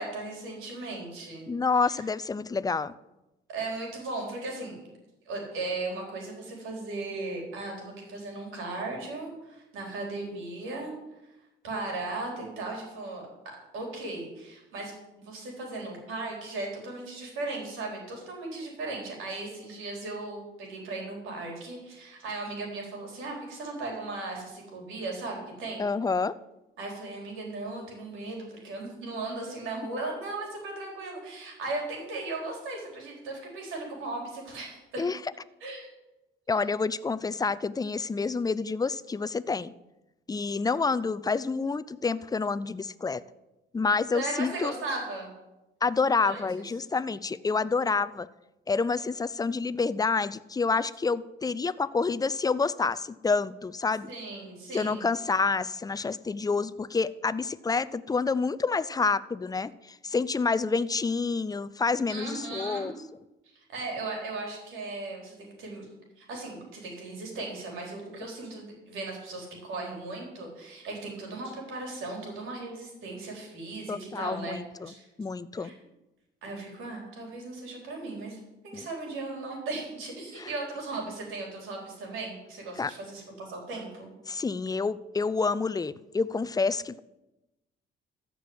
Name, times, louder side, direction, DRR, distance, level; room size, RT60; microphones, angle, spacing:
voice 1, 0.0-1.5 1.8-1.9 3.5-4.8 5.3-10.9 11.6-13.2 13.7-14.9 15.2-25.8 26.8-35.0 35.6-35.9 44.1-45.3 46.2-46.6 54.1-55.1 62.1-62.9 63.5-65.9 66.2-74.6 74.8-75.1 75.6-75.7 76.4-84.1, right 2 dB, 85° right, 0 dB, 4.2 m, -37 dB
voice 2, 1.5-2.9 25.8-26.3 35.0-35.2 36.5-39.7 40.3-43.2 43.7-44.7 45.8-48.3 48.7-54.1 54.7-62.9 73.9-75.7 78.7-78.9 80.4-80.5 82.8-82.9 84.3-87.0, left 4 dB, 20° left, 16 dB, 0.5 m, -28 dB
14.0 x 6.1 x 8.0 m, 0.99 s
cardioid pair, 90°, 20 cm